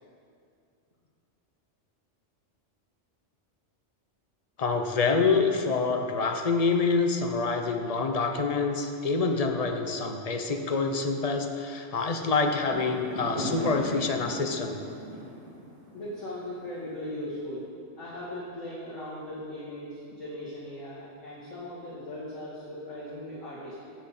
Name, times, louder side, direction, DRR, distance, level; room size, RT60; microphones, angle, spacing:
voice 1, 4.6-14.8, left 4 dB, 40° left, 5 dB, 0.7 m, -26 dB
Fireworks, 12.7-17.1, equal, 25° right, 2.2 m, -37 dB
voice 2, 15.9-23.8, left 1 dB, 85° left, -9 dB, 2.3 m, -38 dB
16.5 x 6.2 x 4.2 m, 2.4 s
omnidirectional pair, 1.3 m